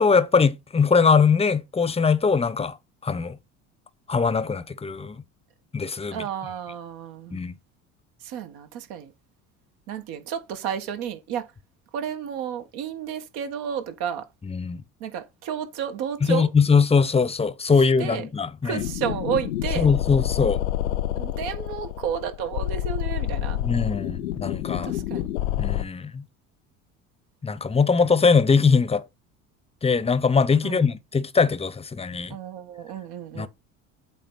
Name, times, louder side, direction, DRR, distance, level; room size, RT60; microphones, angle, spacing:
voice 1, 0.0-2.8 3.0-3.4 4.1-5.2 5.7-6.2 7.3-7.5 14.5-14.8 16.3-18.8 19.8-20.6 23.6-24.9 25.6-26.2 27.4-29.0 29.8-32.4 33.4-33.5, left 5 dB, 15° left, 0.8 m, -21 dB
voice 2, 6.1-7.4 8.2-9.1 9.9-11.4 11.9-14.3 15.0-16.5 18.0-18.3 18.6-19.9 21.2-23.6 24.8-25.3 30.6-30.9 32.3-33.5, right 8 dB, 60° right, 1.6 m, -31 dB
sound 1, 18.8-25.8, left 13 dB, 80° left, 0.7 m, -28 dB
8.2 x 3.5 x 5.7 m
hypercardioid pair, 65°, 42 cm